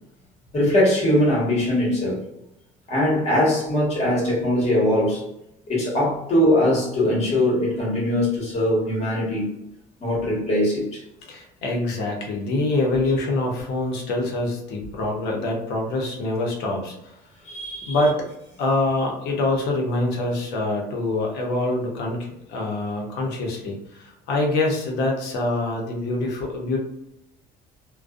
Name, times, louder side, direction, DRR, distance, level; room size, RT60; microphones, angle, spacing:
voice 1, 0.5-2.2 2.9-5.2 5.7-9.5 10.0-11.0 17.4-18.0, left 1 dB, 40° left, -5 dB, 1.3 m, -21 dB
voice 2, 11.2-17.2 17.9-18.3 18.6-26.8, left 2 dB, 80° left, 0 dB, 0.8 m, -25 dB
2.5 x 2.2 x 2.4 m, 0.85 s
cardioid pair, 115°, 17 cm